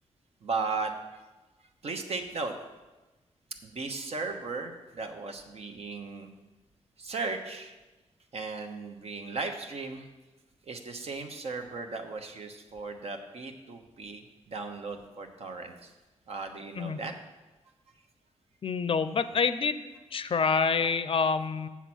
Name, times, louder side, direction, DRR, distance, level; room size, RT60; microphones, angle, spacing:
voice 1, 0.4-1.2 1.8-2.5 3.6-6.3 7.0-7.7 8.3-10.1 10.6-15.9 16.3-17.1 20.4-20.5, right 4 dB, 60° right, 5 dB, 1.0 m, -36 dB
voice 2, 18.6-19.8 20.1-21.7, left 5 dB, 50° left, 12 dB, 0.5 m, -27 dB
7.3 x 7.2 x 6.2 m, 1.2 s
cardioid pair, 85°, 12 cm